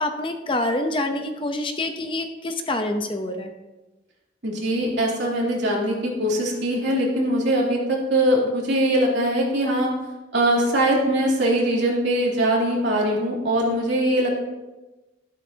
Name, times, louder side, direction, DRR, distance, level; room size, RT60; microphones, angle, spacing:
voice 1, 0.0-3.5, left 1 dB, 25° left, 6 dB, 0.7 m, -26 dB
voice 2, 4.4-9.9 10.3-14.3, right 1 dB, 65° right, -3 dB, 3.1 m, -22 dB
13.0 x 12.0 x 2.8 m, 1.1 s
head